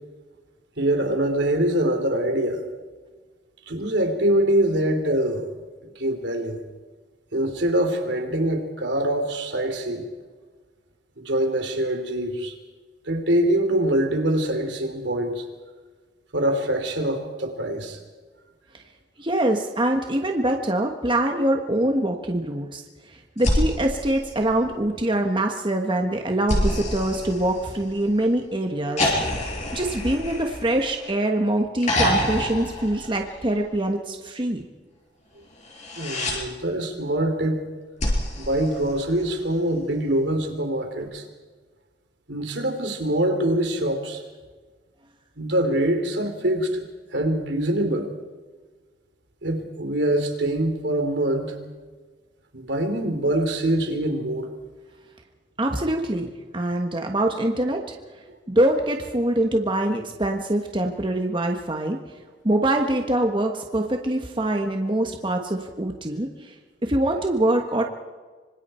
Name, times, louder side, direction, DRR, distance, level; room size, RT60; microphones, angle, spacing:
voice 1, 0.8-2.7 3.7-5.5 5.9-6.6 7.3-10.1 11.2-12.5 13.0-15.4 16.3-18.0 36.0-37.7 38.3-41.2 42.3-44.2 45.4-46.9 47.1-48.1 49.4-51.6 52.5-54.5, right 1 dB, 65° right, 5 dB, 3.4 m, -24 dB
voice 2, 19.2-29.5 29.7-34.6 55.6-58.0 58.5-62.0 62.4-66.5 66.8-67.8, right 1 dB, 25° right, 3 dB, 1.4 m, -24 dB
sound 1, 23.4-25.0 26.5-28.2 29.0-31.2 31.8-33.7 35.6-36.4 38.0-39.5 41.0-41.1, left 1 dB, 40° left, 6.5 m, -27 dB
26.0 x 25.5 x 4.5 m, 1.4 s
head